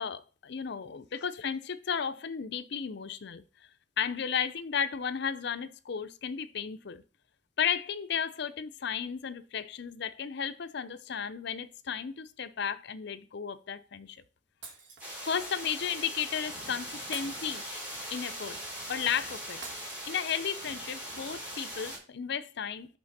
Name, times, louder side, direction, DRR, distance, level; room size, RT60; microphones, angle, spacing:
voice 1, 0.0-3.4 4.0-7.0 7.6-14.2 15.2-17.9 18.1-18.6 18.9-19.6 20.1-23.0, left 7 dB, 60° left, 0.6 m, -34 dB
Shatter, 14.6-15.5 17.1-18.2 19.6-20.6, right 4 dB, 75° right, 1.7 m, -47 dB
sound 1, 15.0-22.0, equal, 10° right, 3.2 m, -40 dB
6.1 x 5.9 x 4.1 m
head